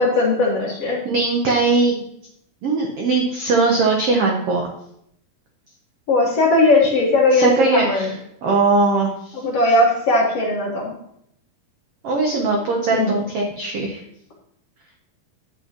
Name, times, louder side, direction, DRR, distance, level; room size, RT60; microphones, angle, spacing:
voice 1, 0.0-1.0 6.1-8.1 9.3-10.9 12.9-13.1, left 2 dB, 55° left, -2 dB, 2.0 m, -18 dB
voice 2, 0.9-1.9 2.6-4.7 7.3-8.1 8.4-9.4 12.0-14.0, right 3 dB, 90° right, 0 dB, 1.3 m, -20 dB
10.5 x 8.3 x 2.9 m, 0.74 s
omnidirectional pair, 4.1 m